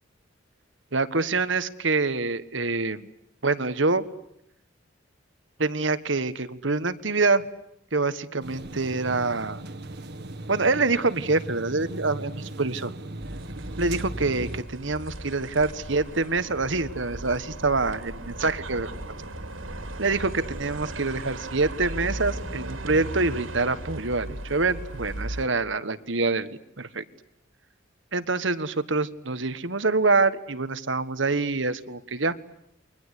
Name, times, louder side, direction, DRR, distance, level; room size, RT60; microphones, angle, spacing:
voice 1, 0.9-3.1 3.4-4.1 5.6-7.5 7.9-9.6 10.5-12.9 13.8-19.0 20.0-26.5 26.8-27.0 28.1-32.3, right 3 dB, 70° right, 12 dB, 1.5 m, -26 dB
sound 1, 8.4-14.6, right 1 dB, 55° right, 1.8 m, -38 dB
sound 2, 13.2-25.5, right 1 dB, 85° right, 3.5 m, -37 dB
29.0 x 23.5 x 8.4 m, 0.80 s
head